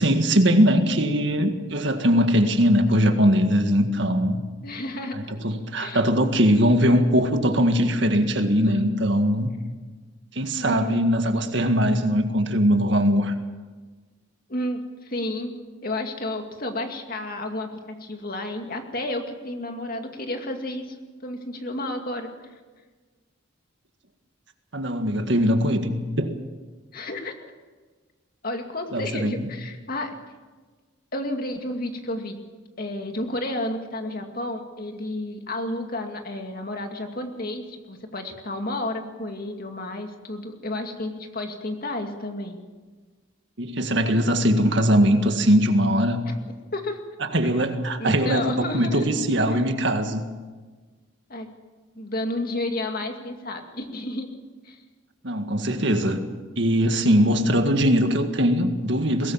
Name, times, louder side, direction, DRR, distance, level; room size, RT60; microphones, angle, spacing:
voice 1, 0.0-4.4 5.1-9.5 10.3-13.3 24.7-26.4 28.9-29.5 43.6-46.2 47.2-50.2 55.2-56.2 56.6-59.3, equal, 60° right, 6 dB, 1.8 m, -21 dB
voice 2, 4.6-5.2 5.8-6.0 8.6-8.7 10.6-11.1 14.5-15.5 15.8-21.0 21.2-22.3 26.9-27.3 28.4-30.1 31.1-32.4 32.8-42.6 46.3-46.4 46.7-47.0 48.0-49.1 51.3-51.5 52.0-54.4 54.6-54.8, left 1 dB, 45° left, 4 dB, 2.3 m, -31 dB
22.0 x 18.0 x 7.4 m, 1.4 s
head